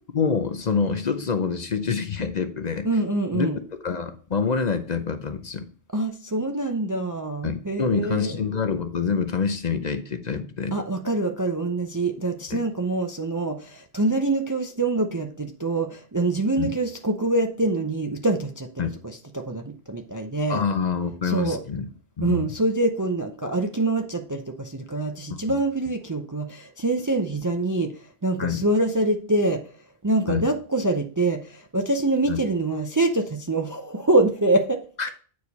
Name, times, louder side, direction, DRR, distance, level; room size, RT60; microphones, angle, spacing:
voice 1, 0.1-2.9 3.3-3.5 3.8-5.7 7.4-10.7 12.5-12.6 16.6-16.7 18.8-18.9 20.5-21.9 22.2-22.5 25.3-25.4 28.4-28.6 30.3-30.4 32.3-32.4 35.0-35.1, left 6 dB, 50° left, 8 dB, 0.7 m, -26 dB
voice 2, 2.8-3.6 5.9-8.5 10.7-20.6 21.2-21.6 22.2-29.7 30.0-34.8, right 2 dB, 25° right, 5 dB, 0.4 m, -25 dB
8.4 x 4.7 x 4.1 m, 0.42 s
omnidirectional pair, 1.0 m